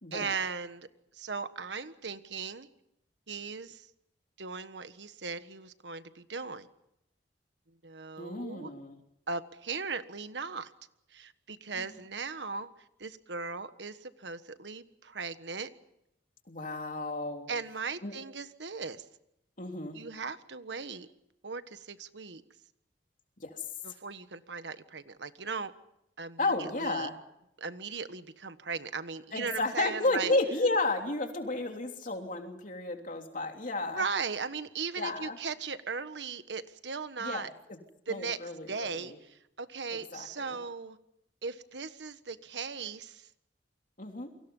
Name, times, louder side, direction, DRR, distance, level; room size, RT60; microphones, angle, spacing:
voice 1, 0.1-0.9 1.1-2.7 3.3-3.9 4.4-6.7 7.7-8.7 9.3-10.7 11.1-12.7 13.0-15.7 17.5-19.0 19.9-21.1 21.4-22.4 23.8-25.7 26.2-27.1 27.6-30.3 33.9-37.5 38.1-41.0 41.4-43.3, right 5 dB, 85° right, 11 dB, 1.4 m, -38 dB
voice 2, 8.2-9.0 11.8-11.9 16.5-17.5 18.0-18.1 19.6-20.0 23.4-23.6 26.4-27.1 29.3-34.0 35.0-35.4 37.2-37.8 38.1-39.1 39.9-40.6 44.0-44.3, left 2 dB, 50° left, 3 dB, 3.3 m, -32 dB
29.0 x 24.5 x 5.5 m, 0.81 s
head